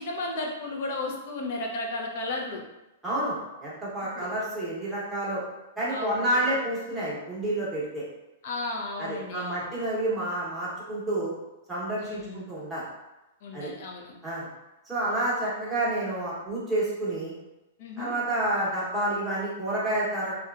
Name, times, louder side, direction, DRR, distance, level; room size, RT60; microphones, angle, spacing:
voice 1, 0.0-2.6 4.2-4.3 5.9-6.4 8.4-9.8 12.0-12.4 13.4-14.1 17.8-18.1, left 2 dB, 50° left, 0 dB, 0.5 m, -34 dB
voice 2, 3.0-5.4 5.8-8.0 9.0-11.3 11.7-12.8 13.5-13.7 14.2-14.5 14.9-17.3 18.0-20.3, right 1 dB, 5° right, -9 dB, 0.8 m, -29 dB
2.8 x 2.2 x 2.3 m, 0.98 s
hypercardioid pair, 160°, 0 cm